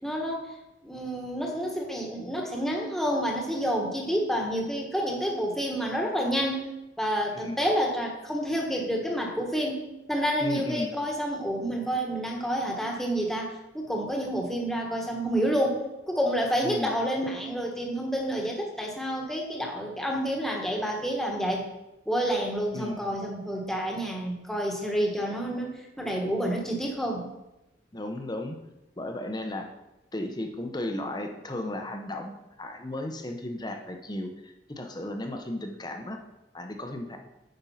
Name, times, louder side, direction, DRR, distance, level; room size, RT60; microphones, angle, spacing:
voice 1, 0.0-0.5 0.8-6.7 7.0-21.6 22.1-27.3, equal, ahead, 0 dB, 1.4 m, -29 dB
voice 2, 10.4-10.9 16.6-16.9 22.7-23.0 27.9-28.6 29.0-29.7 30.1-32.3 32.6-36.2 36.5-37.2, left 1 dB, 25° left, 5 dB, 0.8 m, -35 dB
9.1 x 5.3 x 5.7 m, 0.95 s
head